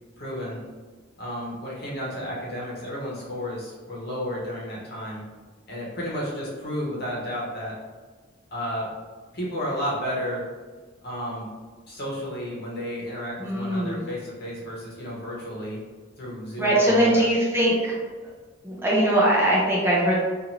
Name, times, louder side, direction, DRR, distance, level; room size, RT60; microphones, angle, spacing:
voice 1, 0.2-0.6 1.2-5.2 5.7-7.7 8.5-8.9 9.3-10.4 11.0-11.5 11.9-15.8 16.2-17.3, equal, 55° left, -5 dB, 0.9 m, -32 dB
voice 2, 13.4-14.0 16.6-17.9 18.2-18.3 18.6-20.2, right 1 dB, 10° right, -6 dB, 0.6 m, -21 dB
2.7 x 2.5 x 3.0 m, 1.4 s
head